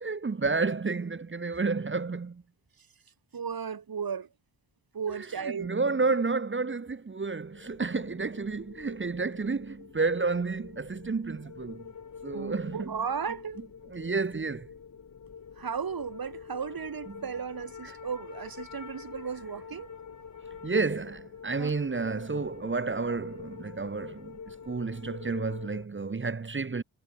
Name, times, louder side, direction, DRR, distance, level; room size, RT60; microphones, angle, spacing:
voice 1, 0.0-2.4 5.1-5.3 5.6-11.9 12.2-13.0 13.9-14.7 17.1-17.2 17.8-18.0 20.6-26.8, right 4 dB, 25° right, 0.9 m, -31 dB
voice 2, 3.3-4.3 4.9-5.8 12.3-13.6 15.6-19.9 21.6-21.7, right 6 dB, 45° right, 1.6 m, -35 dB
sound 1, 7.3-25.9, left 6 dB, 35° left, 1.1 m, -47 dB
cardioid pair, 60°, 49 cm